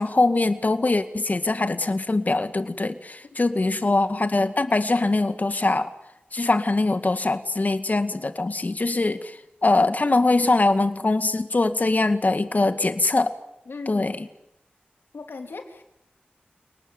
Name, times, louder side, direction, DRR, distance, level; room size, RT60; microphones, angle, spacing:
voice 1, 0.0-5.8 6.3-9.4 9.6-13.3 13.9-14.3, left 2 dB, 50° left, 9 dB, 2.2 m, -22 dB
voice 2, 3.5-3.9 13.7-14.2 15.1-15.8, left 4 dB, 90° left, 5 dB, 3.2 m, -38 dB
30.0 x 19.5 x 9.4 m, 0.86 s
cardioid pair, 45°, 4 cm